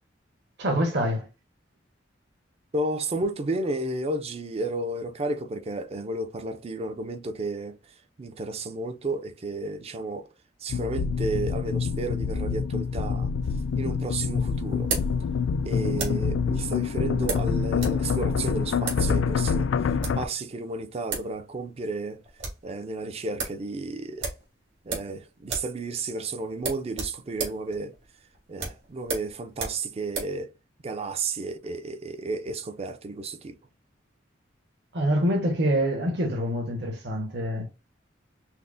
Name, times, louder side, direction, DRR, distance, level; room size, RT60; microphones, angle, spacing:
voice 1, 0.6-1.3 34.9-37.7, equal, 65° right, 1.1 m, -25 dB
voice 2, 2.7-7.8 8.2-10.3 10.6-13.3 13.8-14.9 15.6-22.2 22.6-24.3 24.9-28.0 28.5-30.5 30.8-33.6, right 2 dB, 30° right, 0.4 m, -32 dB
sound 1, 10.7-20.2, left 6 dB, 75° left, 0.3 m, -26 dB
sound 2, 13.4-16.3 17.3-18.0 18.3-18.4 18.8-19.1 19.8-20.3 20.8-20.9 21.1-21.3 21.6-21.7 22.1-22.7 23.0-23.1 23.4-23.6 24.2-25.2 25.4-25.8 26.0-26.2 26.6-30.4, right 4 dB, 90° right, 2.4 m, -34 dB
5.7 x 2.1 x 2.5 m
head